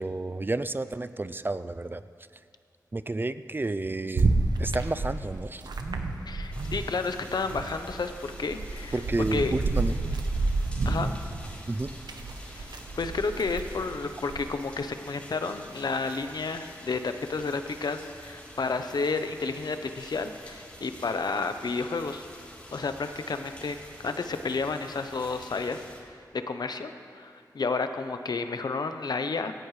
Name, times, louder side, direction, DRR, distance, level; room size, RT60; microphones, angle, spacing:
voice 1, 0.0-2.0 2.9-4.3 4.6-5.6 8.9-10.0 11.7-11.9, right 2 dB, 30° right, 13 dB, 0.4 m, -31 dB
sound 1, 4.2-7.0 7.3-14.5, right 3 dB, 85° right, 0.9 m, -30 dB
voice 2, 6.3-9.0 9.3-9.5 10.8-11.1 12.6-12.7 13.0-22.2 22.7-23.8 24.0-29.5, left 4 dB, 75° left, 8 dB, 0.8 m, -31 dB
sound 2, 6.5-26.0, equal, 15° left, 3.4 m, -48 dB
17.0 x 15.5 x 3.2 m, 2.2 s
wide cardioid pair, 60°, 7 cm